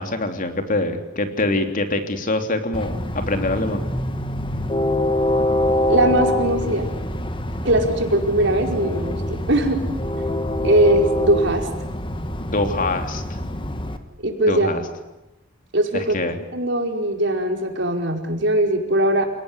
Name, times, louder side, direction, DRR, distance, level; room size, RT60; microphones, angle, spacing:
voice 1, 0.0-3.9 12.5-13.4 14.4-14.8 15.9-16.4, left 2 dB, 45° left, 6 dB, 3.3 m, -24 dB
Train, 2.7-14.0, left 1 dB, 25° left, 1.9 m, -25 dB
voice 2, 5.9-6.9 7.6-9.2 9.5-9.8 10.6-11.7 14.2-14.7 15.7-16.2 16.5-19.3, right 1 dB, 65° right, 3 dB, 4.8 m, -20 dB
28.5 x 18.5 x 9.8 m, 0.97 s
head